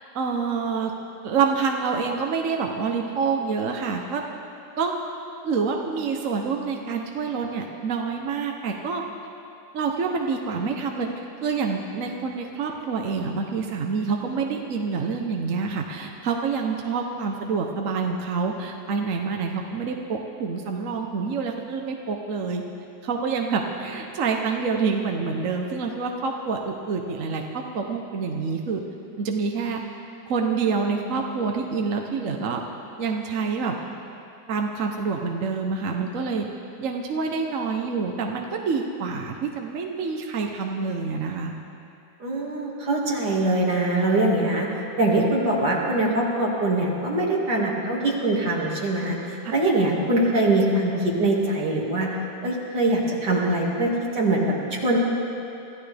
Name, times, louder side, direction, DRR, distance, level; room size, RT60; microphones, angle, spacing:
voice 1, 0.1-0.9 1.2-4.2 4.8-4.9 5.4-9.0 9.7-11.1 11.4-22.6 23.0-28.8 29.2-29.8 30.3-32.6 33.0-33.8 34.5-36.5 36.8-41.5 49.4-49.5, right 5 dB, 55° right, 2 dB, 1.2 m, -27 dB
voice 2, 42.2-44.7 45.0-52.1 52.4-54.4 54.7-55.0, right 2 dB, 75° right, -3 dB, 3.0 m, -23 dB
26.0 x 14.5 x 3.4 m, 2.7 s
omnidirectional pair, 1.8 m